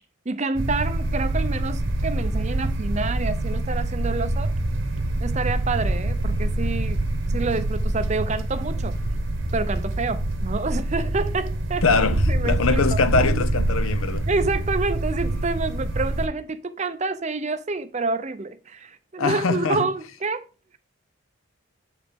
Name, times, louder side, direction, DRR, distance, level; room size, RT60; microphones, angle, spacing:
voice 1, 0.3-4.5 5.2-7.0 7.3-9.0 9.5-12.0 12.3-13.4 14.3-20.5, right 3 dB, 30° right, 0.5 m, -28 dB
sound 1, 0.5-16.3, right 1 dB, 60° right, 1.1 m, -25 dB
voice 2, 11.8-14.3 19.2-19.9, left 4 dB, 75° left, 0.7 m, -23 dB
7.7 x 4.9 x 3.6 m
head